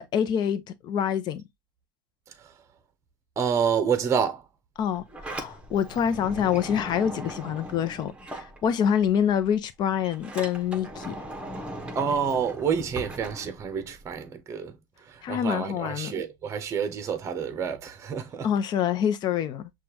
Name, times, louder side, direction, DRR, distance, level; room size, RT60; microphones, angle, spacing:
voice 1, 0.0-1.4 4.8-11.1 15.2-16.1 18.4-19.7, left 8 dB, 45° left, 0.7 m, -26 dB
voice 2, 3.4-4.4 11.9-14.8 15.1-18.5, right 7 dB, 30° right, 0.8 m, -28 dB
Sliding door, 4.8-9.1 9.4-14.1, right 1 dB, 10° right, 1.0 m, -39 dB
6.0 x 2.4 x 2.8 m
hypercardioid pair, 100°, 10 cm